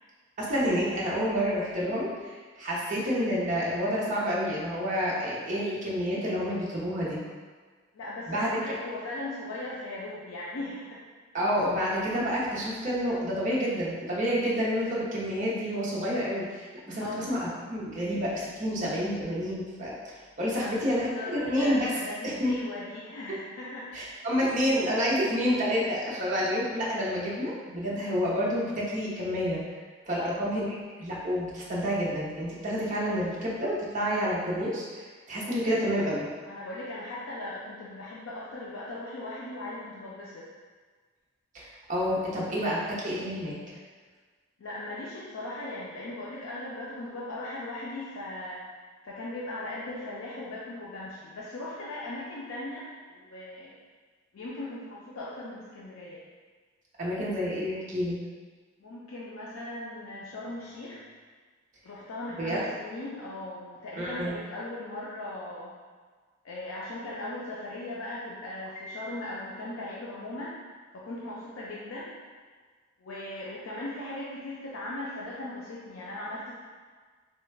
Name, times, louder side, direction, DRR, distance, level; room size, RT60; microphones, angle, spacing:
voice 1, 0.4-7.2 8.3-8.5 11.3-21.9 22.2-22.5 23.9-29.6 30.1-30.7 31.0-36.3 41.5-43.5 57.0-58.2 62.4-62.6 64.0-64.3, equal, 40° right, -6 dB, 0.7 m, -29 dB
voice 2, 7.9-11.0 17.0-17.3 20.6-23.9 30.2-30.5 36.5-40.5 44.6-48.7 49.0-53.8 54.3-56.2 58.8-61.0 61.8-65.8 66.4-70.6 70.9-72.2 73.0-76.5, left 1 dB, 85° left, -6 dB, 0.4 m, -38 dB
3.2 x 2.2 x 3.2 m, 1.5 s
head